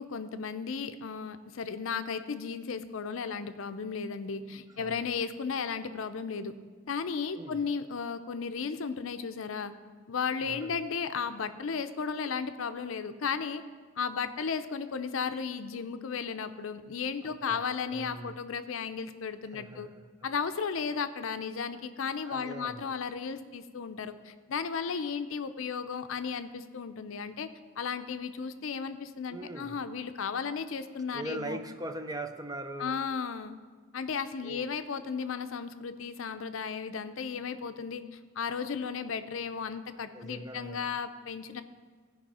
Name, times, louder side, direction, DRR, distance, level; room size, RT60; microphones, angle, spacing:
voice 1, 0.0-6.5 6.9-9.7 10.1-13.6 14.0-19.9 20.2-27.5 27.8-31.6 32.8-33.6 33.9-41.6, left 6 dB, 65° left, 10 dB, 0.5 m, -35 dB
voice 2, 4.8-5.2 7.3-7.6 10.3-10.9 17.2-17.6 17.9-18.4 19.5-20.1 22.3-22.9 29.3-29.8 31.1-33.0 34.4-34.7 40.1-41.0, right 1 dB, 20° right, 8 dB, 0.5 m, -41 dB
15.5 x 5.4 x 4.2 m, 1.5 s
head